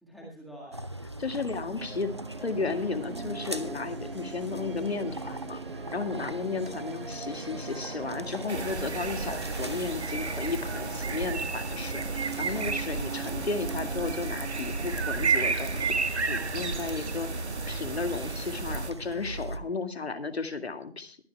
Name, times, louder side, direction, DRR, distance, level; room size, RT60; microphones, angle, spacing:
voice 1, 0.0-1.2 5.9-6.3 12.4-12.8 16.3-16.7, right 1 dB, ahead, -4 dB, 1.9 m, -48 dB
sound 1, 0.7-19.6, right 1 dB, 25° right, 0.5 m, -41 dB
voice 2, 1.2-2.1 2.4-5.6 5.9-21.2, left 4 dB, 75° left, 8 dB, 2.2 m, -34 dB
sound 2, 1.7-19.9, right 5 dB, 55° right, 1.7 m, -42 dB
sound 3, 8.5-18.9, right 4 dB, 90° right, 1.6 m, -32 dB
22.5 x 10.5 x 2.3 m, 0.39 s
figure-of-eight pair, 170°, 32 cm